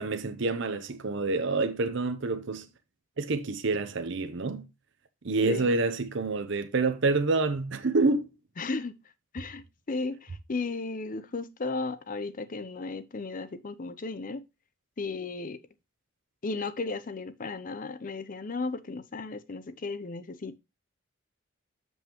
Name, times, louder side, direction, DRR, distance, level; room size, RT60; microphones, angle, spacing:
voice 1, 0.0-2.7 3.2-4.7 5.2-8.3, right 3 dB, 65° right, 0.8 m, -27 dB
voice 2, 8.6-8.9 9.3-14.4 15.0-15.6 16.4-20.6, left 3 dB, 40° left, 0.6 m, -35 dB
7.7 x 5.3 x 2.9 m
head